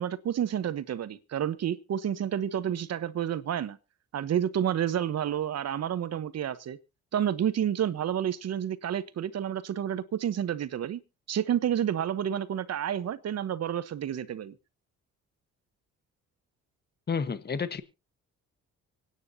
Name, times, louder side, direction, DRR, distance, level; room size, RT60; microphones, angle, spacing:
voice 1, 0.0-3.8 4.1-6.8 7.1-11.0 11.3-14.5, right 10 dB, 55° right, 1.1 m, -30 dB
voice 2, 17.1-17.8, left 5 dB, 35° left, 1.3 m, -30 dB
25.0 x 9.5 x 2.8 m
cardioid pair, 90°, 30 cm